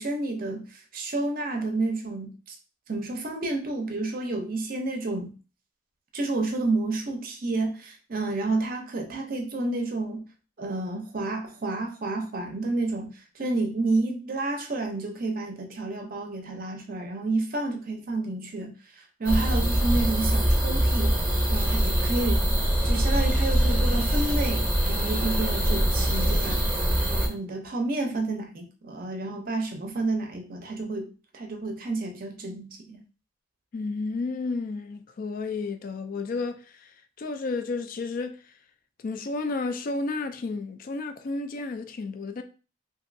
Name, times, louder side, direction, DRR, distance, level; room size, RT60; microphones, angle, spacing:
voice 1, 0.0-2.6 2.9-5.3 6.1-10.2 10.6-13.1 13.4-18.7 19.2-21.2 21.5-22.6 22.8-26.8 27.1-33.0, right 2 dB, 45° right, 0.5 m, -30 dB
sound 1, 19.2-27.3, right 1 dB, 5° right, 0.7 m, -23 dB
voice 2, 33.7-36.9 37.2-38.4 39.0-42.4, left 3 dB, 40° left, 0.3 m, -32 dB
2.9 x 2.6 x 2.5 m
head